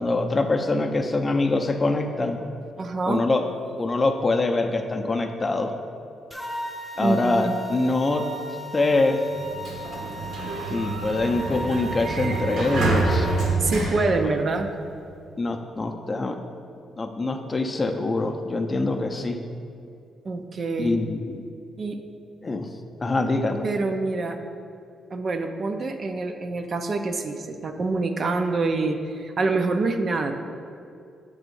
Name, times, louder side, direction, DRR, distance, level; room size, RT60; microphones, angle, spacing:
voice 1, 0.0-2.4 3.1-3.4 3.8-5.7 7.0-8.2 8.7-9.2 10.7-13.3 15.4-16.4 17.0-19.4 20.8-21.4 22.4-22.7 23.0-23.7, left 2 dB, 30° left, 5 dB, 0.5 m, -24 dB
voice 2, 2.8-3.3 7.0-7.5 13.6-14.7 20.2-21.0 21.8-22.0 23.6-24.4 25.1-30.4, right 3 dB, 45° right, 6 dB, 0.5 m, -26 dB
sound 1, 6.3-13.5, right 2 dB, 5° left, 0.8 m, -36 dB
Sliding door, 9.4-15.0, right 3 dB, 75° right, 1.3 m, -27 dB
7.3 x 3.5 x 5.3 m, 2.4 s
cardioid pair, 90°, 0 cm